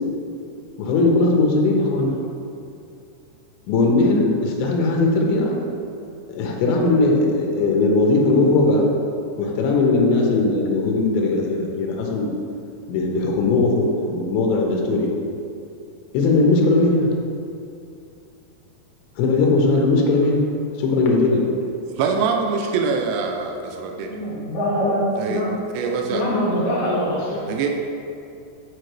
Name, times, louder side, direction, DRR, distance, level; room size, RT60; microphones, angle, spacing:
voice 1, 0.8-2.1 3.7-5.6 6.3-8.8 9.4-12.3 12.9-15.1 16.1-17.1 19.2-20.4 20.8-21.4, left 3 dB, 85° left, -1 dB, 2.9 m, -19 dB
voice 2, 22.0-24.1 25.2-25.4 25.7-26.2 27.5-27.7, right 5 dB, 90° right, 2 dB, 2.3 m, -24 dB
voice 3, 24.0-25.5 26.1-27.4, equal, 70° left, -7 dB, 3.3 m, -23 dB
7.8 x 4.6 x 3.1 m, 2.5 s
omnidirectional pair, 5.2 m